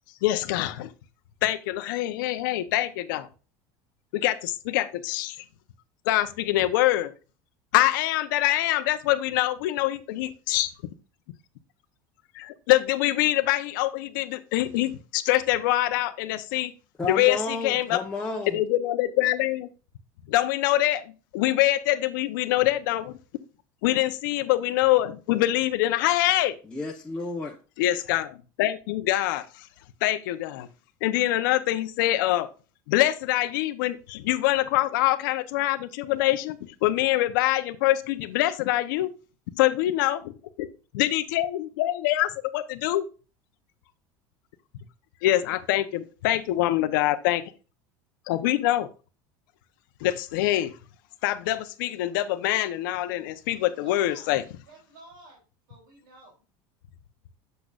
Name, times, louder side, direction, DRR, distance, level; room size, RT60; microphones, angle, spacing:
voice 1, 0.2-0.9 1.4-3.3 4.1-5.4 6.1-7.1 7.7-10.7 12.3-16.7 17.1-18.0 18.5-19.7 20.3-23.1 23.8-26.6 27.8-29.7 30.0-30.7 31.0-32.5 32.9-39.1 39.6-40.2 40.6-40.7 40.9-43.0 45.2-47.5 48.3-48.9 50.0-50.7 51.2-54.4, left 15 dB, 80° left, 0.9 m, -24 dB
voice 2, 17.0-18.6 26.6-27.6, left 3 dB, 10° left, 1.1 m, -31 dB
voice 3, 53.6-54.4 54.7-55.4 55.7-56.4, right 2 dB, 90° right, 3.5 m, -51 dB
8.0 x 6.8 x 2.5 m
supercardioid pair, 135°, 11 cm